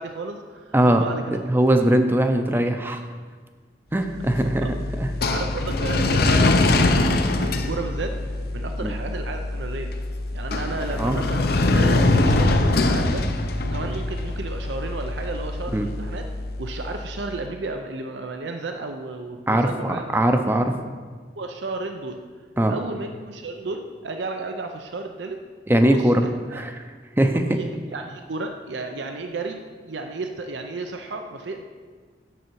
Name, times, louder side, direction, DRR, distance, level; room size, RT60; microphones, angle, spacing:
voice 1, 0.0-1.4 4.3-4.7 5.3-9.9 10.3-13.3 13.6-16.3 16.6-20.2 21.3-22.2 22.7-25.4 25.9-26.7 27.3-31.6, right 3 dB, 85° right, 5 dB, 0.6 m, -33 dB
voice 2, 0.7-1.0 1.5-3.0 3.9-5.1 8.8-8.9 11.0-11.2 15.7-15.9 19.5-20.7 22.6-22.8 25.7-26.3 26.5-26.8 27.2-27.6, right 1 dB, 10° right, 6 dB, 0.5 m, -20 dB
sound 1, 4.1-17.2, left 2 dB, 60° left, 0.6 m, -23 dB
9.2 x 6.8 x 4.6 m, 1.5 s
head